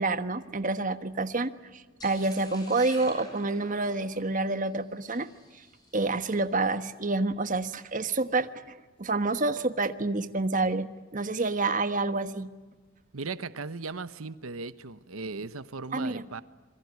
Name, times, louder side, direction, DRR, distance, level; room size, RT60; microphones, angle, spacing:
voice 1, 0.0-5.3 5.9-8.5 9.0-12.5 15.9-16.3, right 3 dB, 40° right, 10 dB, 1.3 m, -28 dB
sound 1, 2.0-6.3, left 1 dB, 20° left, 7.6 m, -49 dB
voice 2, 13.1-16.4, right 4 dB, 90° right, 13 dB, 1.0 m, -37 dB
26.5 x 23.0 x 9.6 m, 1.3 s
head